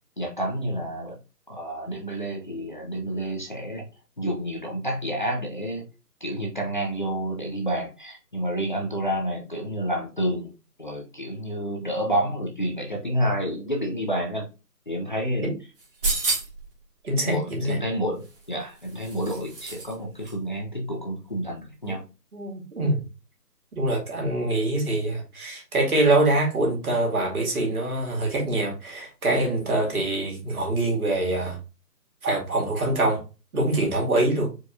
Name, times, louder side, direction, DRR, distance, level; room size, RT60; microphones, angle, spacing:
voice 1, 0.2-1.2 1.5-3.8 4.2-5.9 6.2-10.5 10.8-14.5 14.9-15.5 17.2-22.0, equal, 30° left, 0.7 m, -29 dB
sound 1, 15.8-16.7 18.2-19.9 20.2-20.3, right 3 dB, 35° right, 1.9 m, -30 dB
voice 2, 17.0-17.8 21.9-22.0 22.3-23.0 23.7-31.6 32.2-33.2 33.5-34.5, right 2 dB, 60° right, 2.5 m, -24 dB
4.7 x 4.4 x 2.6 m
figure-of-eight pair, 160°, 48 cm